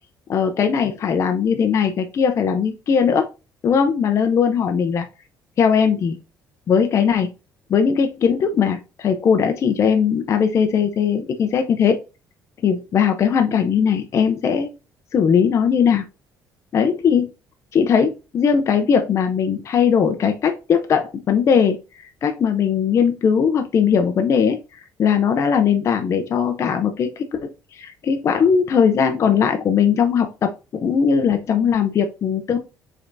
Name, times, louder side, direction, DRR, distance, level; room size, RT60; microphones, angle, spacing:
voice 1, 0.3-3.2 3.6-5.0 5.6-6.2 6.7-7.3 7.7-12.0 12.6-14.7 15.1-16.0 16.7-17.3 17.7-21.8 22.2-24.6 25.0-32.6, left 7 dB, 45° left, 6 dB, 0.5 m, -19 dB
5.0 x 3.4 x 2.6 m, 0.30 s
cardioid pair, 120°, 7 cm